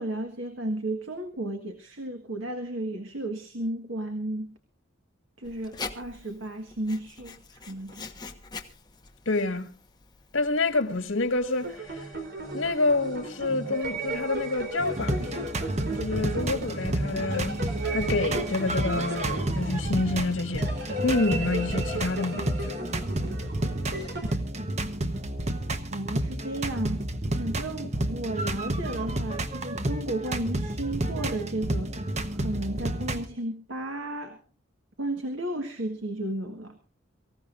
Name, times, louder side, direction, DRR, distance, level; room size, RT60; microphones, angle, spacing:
voice 1, 0.0-4.6 5.4-8.1 25.9-27.1 27.4-32.0 32.3-34.4 35.0-36.8, right 1 dB, 80° right, 1.7 m, -33 dB
Writing, 5.4-11.8, left 4 dB, 20° left, 1.3 m, -44 dB
voice 2, 9.3-9.7 10.3-12.1 12.5-15.5 16.0-17.6 17.9-20.7 21.0-22.8 27.8-27.9, left 2 dB, 85° left, 1.8 m, -28 dB
sound 1, 11.5-24.4, right 1 dB, 55° right, 3.8 m, -35 dB
sound 2, 14.8-33.2, right 1 dB, 35° right, 1.1 m, -31 dB
24.5 x 15.5 x 2.6 m
head